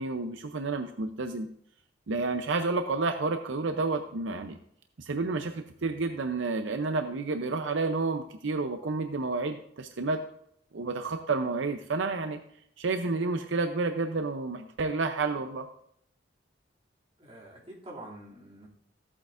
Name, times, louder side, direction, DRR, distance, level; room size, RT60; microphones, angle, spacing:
voice 1, 0.0-1.5 2.1-4.6 5.0-10.2 10.7-12.4 12.8-15.7, right 3 dB, 75° right, 7 dB, 0.6 m, -30 dB
voice 2, 17.2-18.7, right 1 dB, 30° right, -4 dB, 2.6 m, -46 dB
14.0 x 8.4 x 2.5 m, 0.68 s
head